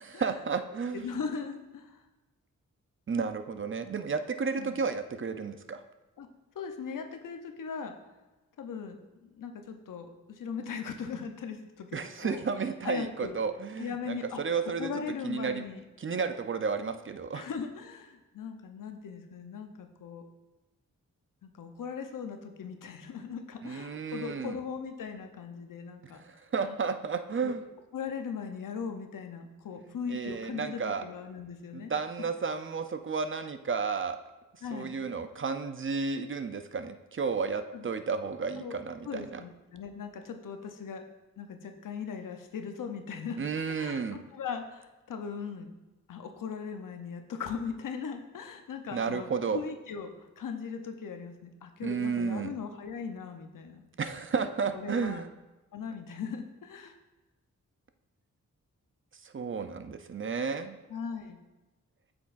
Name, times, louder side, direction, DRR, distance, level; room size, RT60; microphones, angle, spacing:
voice 1, 0.2-1.1 3.1-5.8 11.9-14.9 15.2-15.6 16.0-17.5 23.6-24.6 26.1-27.6 29.8-31.0 31.7-34.2 34.7-39.4 43.4-44.2 48.9-49.6 51.8-52.5 54.0-55.3 59.2-60.8, right 5 dB, 40° right, 9 dB, 0.5 m, -32 dB
voice 2, 0.9-2.0 4.6-4.8 6.2-6.3 6.5-7.9 8.6-12.4 12.8-13.4 13.8-14.4 14.8-15.8 17.3-20.2 21.4-26.2 26.7-26.8 27.4-27.5 27.9-31.9 32.2-32.3 34.6-35.0 37.7-37.9 38.6-38.7 39.0-41.0 41.4-43.4 43.7-45.7 46.1-53.8 54.7-55.2 55.7-57.0 60.9-61.4, left 6 dB, 80° left, 6 dB, 0.8 m, -39 dB
7.8 x 6.0 x 2.5 m, 1.1 s
cardioid pair, 60°, 32 cm